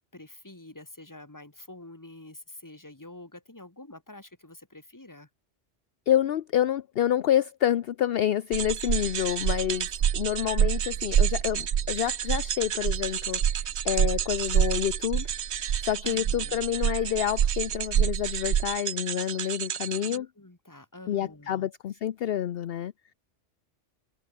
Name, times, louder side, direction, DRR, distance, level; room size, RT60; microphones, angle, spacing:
voice 1, 0.0-5.3 16.0-16.6 20.0-21.7, left 2 dB, 15° left, 2.1 m, -47 dB
voice 2, 6.1-15.3 15.8-20.3 21.1-22.9, left 11 dB, 60° left, 0.8 m, -28 dB
sound 1, 8.5-20.2, right 9 dB, 70° right, 1.1 m, -27 dB
omnidirectional pair, 1.2 m